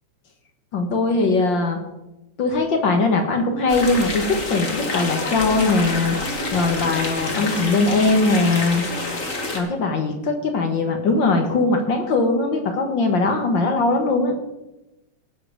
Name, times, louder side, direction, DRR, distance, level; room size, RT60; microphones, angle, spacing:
voice 1, 0.7-1.8 2.4-6.2 6.5-8.9 9.5-14.3, left 3 dB, 50° left, 5 dB, 1.7 m, -20 dB
sound 1, 3.7-9.6, left 2 dB, 30° left, 1.8 m, -27 dB
17.5 x 6.9 x 5.1 m, 0.96 s
omnidirectional pair, 3.3 m